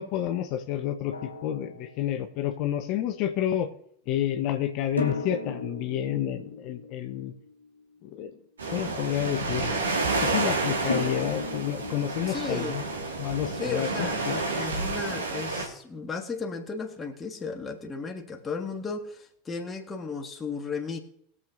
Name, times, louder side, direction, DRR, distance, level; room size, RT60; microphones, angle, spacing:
voice 1, 0.0-3.7 4.1-7.3 8.0-8.4 8.7-9.8 10.2-12.8 13.2-14.4, left 11 dB, 50° left, 6 dB, 0.9 m, -30 dB
Drum, 1.1-2.5 5.0-7.9 10.9-13.7, left 2 dB, 85° left, 1.5 m, -37 dB
sound 1, 8.6-15.7, right 3 dB, 75° right, 2.0 m, -30 dB
voice 2, 12.3-12.8 13.6-21.0, left 4 dB, 20° left, 2 dB, 1.5 m, -35 dB
21.0 x 7.4 x 2.6 m, 0.68 s
figure-of-eight pair, 85°, 0 cm